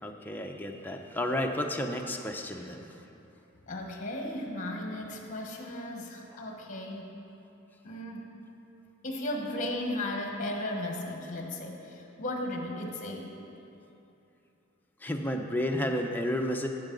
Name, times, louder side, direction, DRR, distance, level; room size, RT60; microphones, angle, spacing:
voice 1, 0.0-2.9 15.0-16.7, left 1 dB, 10° left, 2 dB, 0.5 m, -31 dB
voice 2, 3.7-7.2 7.8-8.3 9.0-13.3, left 1 dB, 40° left, 1 dB, 1.2 m, -35 dB
12.0 x 7.4 x 3.9 m, 2.9 s
head